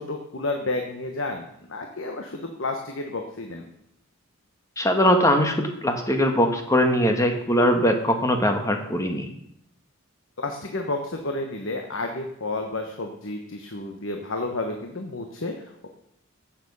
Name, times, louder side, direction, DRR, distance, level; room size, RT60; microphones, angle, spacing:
voice 1, 0.0-3.7 10.4-15.9, left 2 dB, 65° left, 3 dB, 1.2 m, -31 dB
voice 2, 4.8-9.3, equal, 15° left, 5 dB, 1.4 m, -21 dB
15.5 x 7.2 x 5.5 m, 0.78 s
head